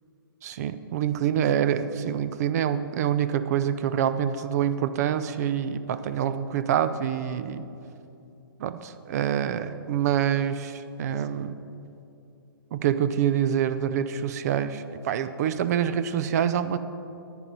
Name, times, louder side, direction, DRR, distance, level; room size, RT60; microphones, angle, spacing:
voice 1, 0.4-7.7 8.6-11.5 12.7-16.8, right 9 dB, 45° right, 13 dB, 0.5 m, -26 dB
10.0 x 9.4 x 4.0 m, 2.8 s
hypercardioid pair, 140°, 12 cm